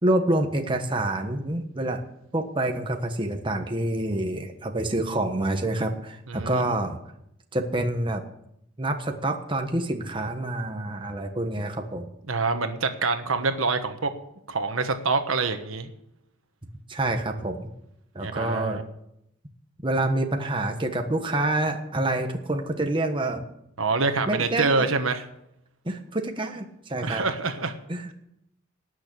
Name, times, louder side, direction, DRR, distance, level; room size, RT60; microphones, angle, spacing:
voice 1, 0.0-2.0 2.3-7.0 7.5-8.2 8.8-12.1 16.9-17.7 18.1-18.8 19.8-23.4 24.3-24.9 25.8-27.2 27.9-28.1, right 1 dB, 25° right, 4 dB, 1.3 m, -27 dB
voice 2, 6.3-6.7 12.3-14.1 14.5-15.9 18.2-18.8 23.8-25.3 27.0-27.8, right 4 dB, 80° right, 7 dB, 1.3 m, -26 dB
19.0 x 6.5 x 8.6 m, 0.79 s
head